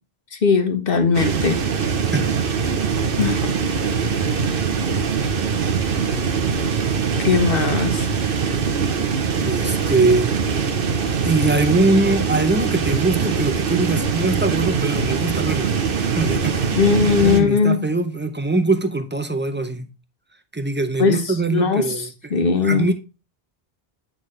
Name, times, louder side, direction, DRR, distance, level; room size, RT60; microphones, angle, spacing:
voice 1, 0.4-1.6 3.2-3.5 7.2-8.1 16.7-17.8 21.0-22.1 22.3-22.9, left 5 dB, 60° left, 1.3 m, -19 dB
sound 1, 1.1-17.4, right 6 dB, 60° right, 1.0 m, -22 dB
voice 2, 9.4-10.3 11.2-15.7 16.0-16.8 17.0-19.9 20.5-22.4 22.6-22.9, right 3 dB, 15° right, 0.5 m, -22 dB
8.5 x 3.9 x 3.1 m
omnidirectional pair, 1.1 m